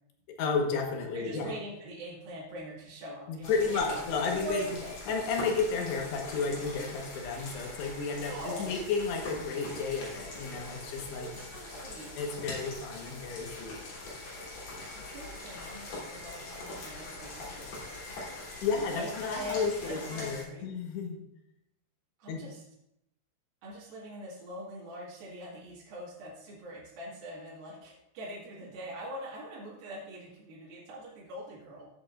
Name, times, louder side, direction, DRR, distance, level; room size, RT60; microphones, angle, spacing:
voice 1, 0.3-1.5 3.3-4.7 5.1-11.3 12.2-13.8 18.6-21.2 22.3-22.4, left 4 dB, 80° left, 2 dB, 3.5 m, -32 dB
voice 2, 1.1-5.0 8.3-8.8 11.1-12.1 14.9-17.8 18.7-20.6 22.2-22.6 23.6-31.9, equal, 60° right, -7 dB, 3.7 m, -43 dB
sound 1, 3.4-20.4, left 2 dB, 60° left, 5.3 m, -42 dB
14.5 x 8.9 x 2.6 m, 0.81 s
omnidirectional pair, 4.9 m